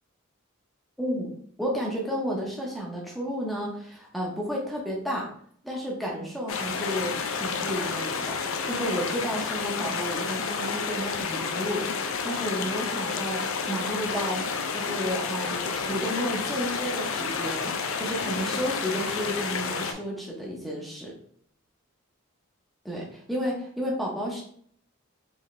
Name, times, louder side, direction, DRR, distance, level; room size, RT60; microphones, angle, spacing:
voice 1, 1.0-1.3 1.6-5.3 5.6-21.1 22.8-24.4, equal, ahead, -3 dB, 0.7 m, -32 dB
sound 1, 6.5-19.9, left 5 dB, 70° left, 0.5 m, -30 dB
4.1 x 3.4 x 3.2 m, 0.63 s
head